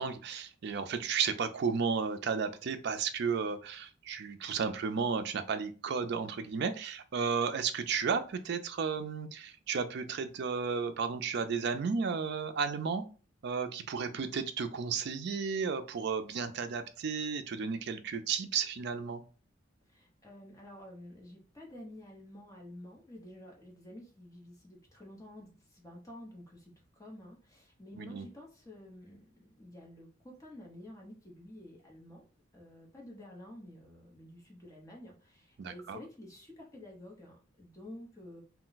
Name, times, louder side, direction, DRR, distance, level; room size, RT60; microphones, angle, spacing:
voice 1, 0.0-13.0 13.4-19.2 28.0-28.3 35.6-36.0, right 5 dB, 55° right, 9 dB, 0.4 m, -33 dB
voice 2, 19.9-32.2 32.5-38.4, left 1 dB, 15° left, -2 dB, 0.9 m, -50 dB
2.3 x 2.2 x 3.9 m, 0.36 s
head